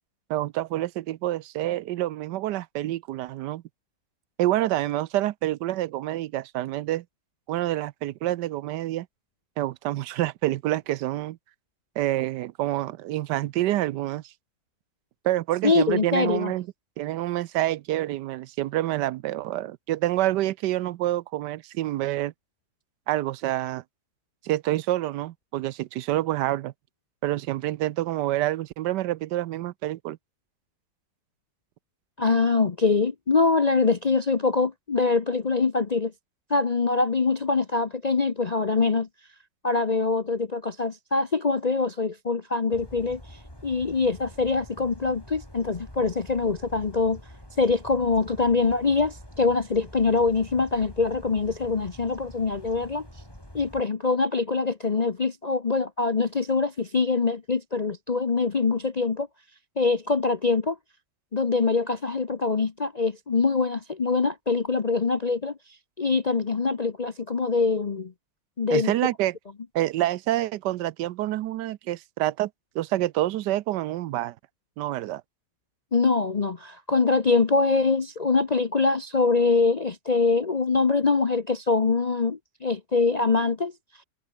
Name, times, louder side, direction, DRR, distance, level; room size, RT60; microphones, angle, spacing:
voice 1, 0.3-3.6 4.4-7.0 7.5-9.1 9.6-11.4 12.0-14.3 15.2-16.7 17.0-22.3 23.1-23.8 24.4-26.7 27.2-30.2 68.7-69.4 69.7-72.5 72.7-74.3 74.8-75.2, right 14 dB, 80° right, 1.2 m, -27 dB
voice 2, 15.6-16.5 32.2-36.1 36.5-39.1 39.6-47.2 47.6-53.1 53.5-59.3 59.8-60.8 61.3-65.6 66.0-68.1 68.6-68.9 75.9-83.7, left 4 dB, 40° left, 0.6 m, -24 dB
sound 1, 42.7-53.8, equal, 15° left, 8.0 m, -46 dB
omnidirectional pair, 1.8 m